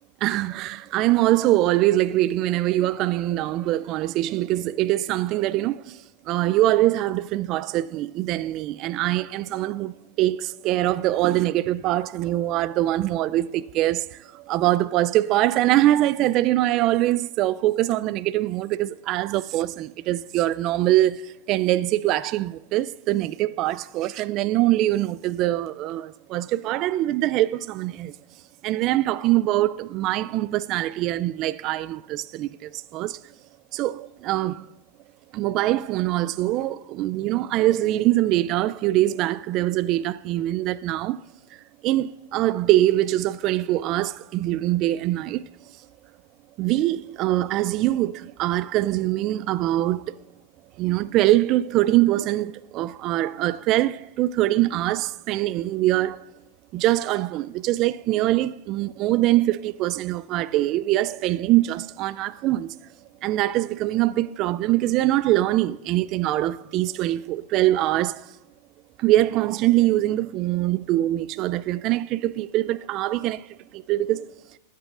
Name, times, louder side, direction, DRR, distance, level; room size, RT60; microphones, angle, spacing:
voice 1, 0.2-6.0 6.3-28.1 28.6-33.2 33.7-34.7 35.3-41.2 41.8-45.4 46.6-50.1 50.8-56.2 56.7-62.8 63.2-68.3 69.0-73.5 73.7-74.3, right 15 dB, 45° right, 0.3 m, -23 dB
22.0 x 8.1 x 2.5 m
hypercardioid pair, 115°, 0 cm